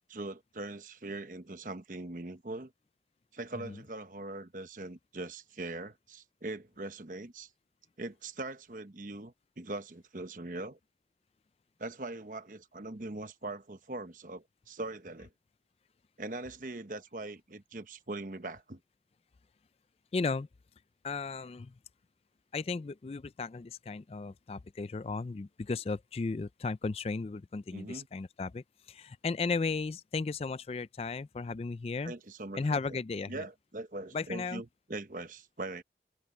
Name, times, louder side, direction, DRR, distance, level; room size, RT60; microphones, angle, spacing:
voice 1, 0.0-2.7 3.3-7.5 8.0-10.8 11.8-15.3 16.2-18.8 27.7-28.1 32.0-33.0 33.3-35.8, right 2 dB, 50° right, 1.1 m, -41 dB
voice 2, 20.1-20.5 21.0-21.7 22.5-32.1 32.5-33.4 34.1-34.6, left 4 dB, 35° left, 0.3 m, -35 dB
head